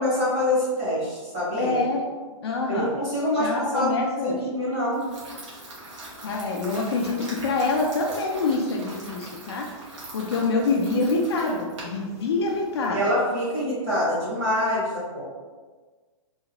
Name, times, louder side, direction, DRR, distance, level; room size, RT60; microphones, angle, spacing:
voice 1, 0.0-1.7 2.7-3.9 4.2-5.0 12.9-15.2, left 1 dB, 20° right, -10 dB, 1.3 m, -25 dB
voice 2, 1.6-2.0 2.4-2.9 3.4-4.4 6.2-9.7 10.1-13.0, left 3 dB, 50° left, 0 dB, 0.5 m, -25 dB
sound 1, 4.9-12.9, right 1 dB, 65° right, 1.3 m, -42 dB
3.7 x 2.4 x 2.9 m, 1.4 s
hypercardioid pair, 175°, 17 cm